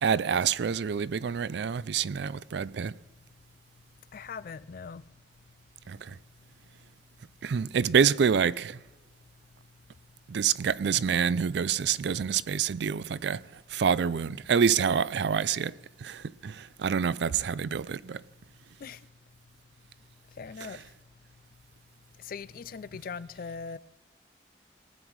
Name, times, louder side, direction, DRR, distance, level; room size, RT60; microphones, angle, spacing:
voice 1, 0.0-2.9 5.9-6.1 7.4-8.8 10.3-13.4 13.7-15.7 16.0-18.2, right 7 dB, 65° right, 0.4 m, -27 dB
voice 2, 4.1-5.0 18.8-19.0 20.4-20.8 22.2-23.8, left 5 dB, 45° left, 0.3 m, -40 dB
19.0 x 9.1 x 4.7 m
head